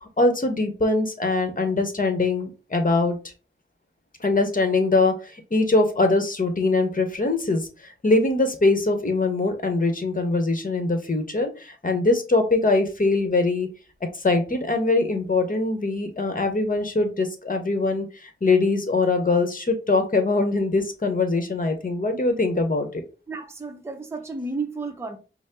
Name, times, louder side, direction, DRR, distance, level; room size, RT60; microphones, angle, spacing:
voice 1, 0.0-3.2 4.2-13.7 14.1-23.0, left 3 dB, 40° left, 1.1 m, -22 dB
voice 2, 23.3-25.2, right 3 dB, 10° right, 0.7 m, -32 dB
5.0 x 2.1 x 3.7 m
cardioid pair, 55°, 21 cm